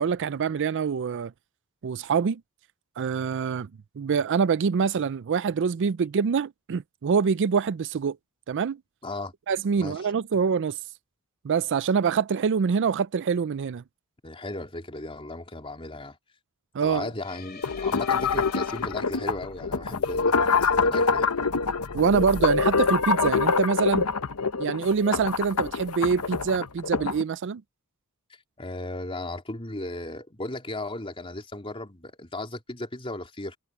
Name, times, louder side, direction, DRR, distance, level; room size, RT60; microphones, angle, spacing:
voice 1, 0.0-1.3 1.8-2.4 3.0-3.7 4.0-8.2 8.5-8.8 9.5-10.8 11.4-13.8 16.7-17.1 21.9-24.1 24.6-27.6, right 6 dB, 55° right, 0.4 m, -25 dB
voice 2, 9.0-9.3 9.8-10.0 14.2-16.2 16.8-21.3 28.6-33.6, left 2 dB, 25° left, 3.8 m, -36 dB
sound 1, 17.2-19.5, left 6 dB, 45° left, 3.0 m, -45 dB
sound 2, 17.6-27.2, left 4 dB, 75° left, 0.9 m, -25 dB
head